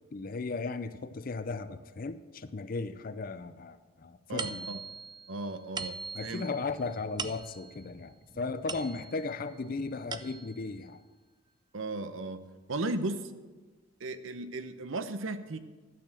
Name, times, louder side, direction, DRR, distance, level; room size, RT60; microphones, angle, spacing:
voice 1, 0.1-4.7 6.1-11.0, left 3 dB, 45° left, 13 dB, 0.4 m, -36 dB
voice 2, 4.3-4.8 5.3-6.0 6.2-6.5 11.7-12.4 12.7-13.2 14.0-15.6, right 2 dB, 75° right, 11 dB, 0.8 m, -35 dB
sound 1, 4.4-9.4 9.8-10.7, right 5 dB, 20° right, 0.4 m, -42 dB
12.0 x 6.8 x 7.5 m, 1.3 s
head